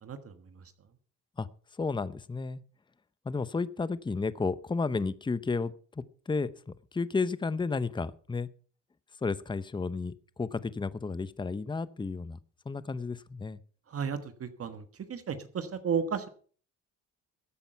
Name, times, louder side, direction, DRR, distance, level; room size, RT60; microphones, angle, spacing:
voice 1, 0.0-0.7 13.9-16.3, right 6 dB, 50° right, 10 dB, 1.4 m, -34 dB
voice 2, 1.8-2.6 3.2-8.5 9.2-12.4 12.7-13.6, left 4 dB, 15° left, 16 dB, 0.7 m, -32 dB
14.5 x 8.6 x 5.7 m, 0.44 s
cardioid pair, 90°, 30 cm